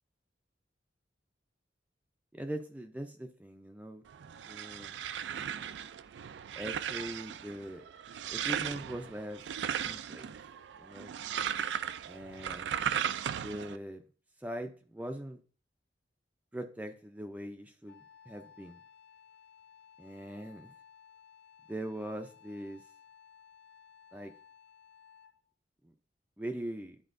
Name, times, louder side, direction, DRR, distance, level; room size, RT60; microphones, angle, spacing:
voice 1, 2.3-4.0 4.5-4.9 6.6-7.8 8.3-9.4 9.8-10.3 10.8-11.1 12.0-12.7 13.4-14.0 14.4-15.4 16.5-18.8 20.0-20.7 21.7-22.8 24.1-24.3 25.8-25.9 26.4-27.0, right 1 dB, 10° right, 5 dB, 0.5 m, -41 dB
sound 1, 4.1-13.8, right 8 dB, 70° right, 0.3 m, -37 dB
Wind instrument woodwind instrument, 17.9-25.5, left 8 dB, 65° left, 0.5 m, -58 dB
11.0 x 4.3 x 2.5 m, 0.40 s
head